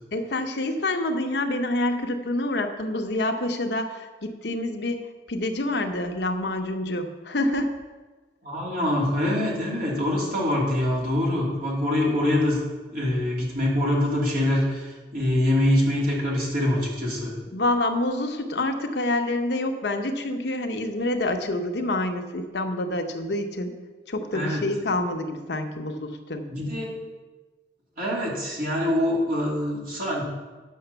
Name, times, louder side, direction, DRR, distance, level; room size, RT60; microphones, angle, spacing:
voice 1, 0.1-5.0 5.3-7.8 17.5-23.7 24.1-26.4, left 1 dB, 70° left, 5 dB, 0.9 m, -27 dB
voice 2, 8.4-12.6 12.9-17.3 24.3-24.6 26.5-26.9 28.0-30.2, left 1 dB, 55° right, -4 dB, 2.9 m, -24 dB
9.3 x 6.0 x 6.8 m, 1.3 s
head